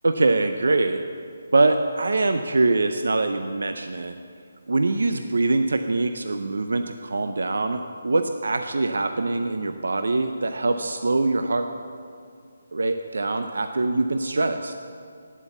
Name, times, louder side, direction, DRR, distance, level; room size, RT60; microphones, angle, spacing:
voice 1, 0.0-1.0 1.5-4.1 4.7-11.7 12.7-14.7, right 3 dB, 75° right, 7 dB, 0.6 m, -23 dB
10.0 x 8.3 x 7.1 m, 2.3 s
hypercardioid pair, 180°, 0 cm